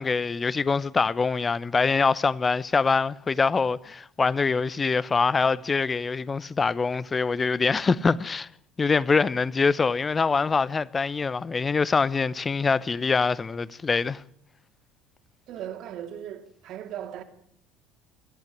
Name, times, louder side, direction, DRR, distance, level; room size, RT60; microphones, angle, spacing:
voice 1, 0.0-8.5 8.8-14.2, left 4 dB, 25° left, 0.8 m, -24 dB
voice 2, 15.5-17.2, right 10 dB, 50° right, 2.8 m, -37 dB
23.0 x 15.0 x 10.0 m
figure-of-eight pair, 60°, 0 cm